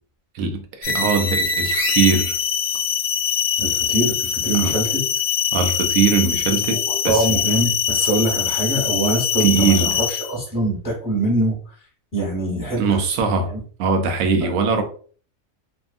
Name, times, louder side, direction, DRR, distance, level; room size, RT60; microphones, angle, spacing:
voice 1, 0.3-2.4 4.5-4.7 5.5-6.8 7.0-7.5 9.4-10.0 12.8-13.5 13.8-14.8, right 5 dB, 85° right, 1.0 m, -21 dB
sound 1, 0.8-10.4, left 7 dB, 65° left, 0.7 m, -23 dB
voice 2, 3.6-5.0 6.7-11.7 12.1-12.8 13.5-13.6, right 1 dB, 15° left, 1.0 m, -23 dB
2.7 x 2.4 x 2.4 m
omnidirectional pair, 1.4 m